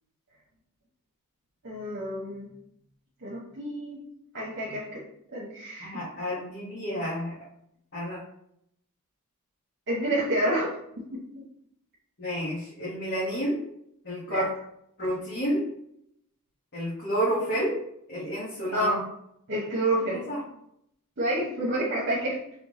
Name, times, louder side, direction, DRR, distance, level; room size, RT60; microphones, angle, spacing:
voice 1, 1.6-2.5 3.2-4.0 4.3-5.0 5.3-5.9 9.9-10.7 11.1-11.4 14.3-14.4 18.7-19.0 19.5-20.2 21.2-22.4, right 1 dB, 55° right, -5 dB, 1.0 m, -28 dB
voice 2, 5.8-7.3 7.9-8.2 12.2-13.6 14.0-14.5 15.0-15.7 16.7-17.8 18.1-19.0 20.0-20.4, equal, 50° left, -8 dB, 1.4 m, -30 dB
3.7 x 3.4 x 3.7 m, 0.74 s
head